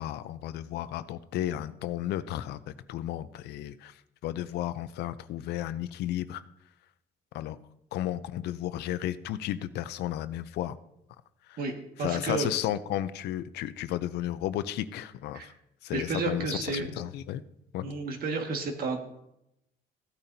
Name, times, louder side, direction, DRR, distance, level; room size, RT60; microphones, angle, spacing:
voice 1, 0.0-4.0 4.2-6.4 7.3-7.6 7.9-10.8 11.5-11.6 12.0-15.5 15.8-17.4 17.7-17.9, left 12 dB, 80° left, 14 dB, 0.6 m, -33 dB
voice 2, 12.0-12.5 15.3-15.5 15.9-16.9 17.8-19.2, right 4 dB, 60° right, 4 dB, 1.9 m, -31 dB
15.5 x 8.8 x 2.8 m, 0.82 s
cardioid pair, 110°, 17 cm